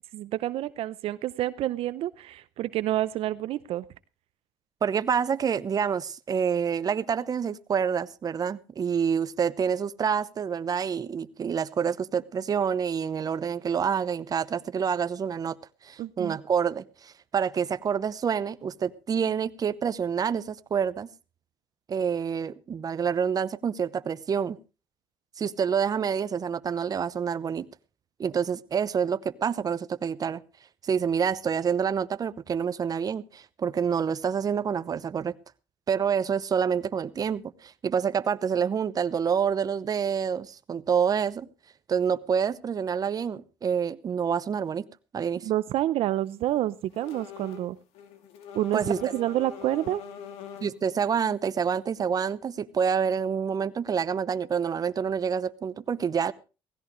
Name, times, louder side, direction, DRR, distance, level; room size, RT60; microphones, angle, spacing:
voice 1, 0.1-3.8 16.0-16.4 45.4-47.8 48.5-48.8 49.1-50.0, right 14 dB, 70° right, 16 dB, 0.6 m, -28 dB
voice 2, 4.8-15.6 15.8-21.1 21.9-24.6 25.4-27.7 28.2-30.4 30.8-35.3 35.9-41.5 41.9-44.9 45.1-45.5 48.7-49.1 50.6-56.3, right 7 dB, 40° right, 15 dB, 0.8 m, -27 dB
sound 1, 46.9-47.7 47.9-50.8, left 8 dB, 85° left, 2.8 m, -43 dB
16.5 x 16.0 x 3.1 m, 0.31 s
cardioid pair, 95°, 10 cm